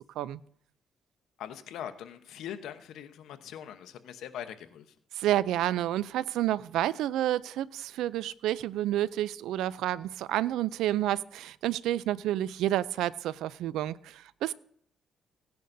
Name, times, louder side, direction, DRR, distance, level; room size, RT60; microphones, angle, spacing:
voice 1, 1.4-4.9, left 9 dB, 80° left, 0.9 m, -42 dB
voice 2, 5.2-14.5, right 13 dB, 85° right, 0.4 m, -29 dB
17.0 x 10.5 x 2.6 m
cardioid pair, 90°, 0 cm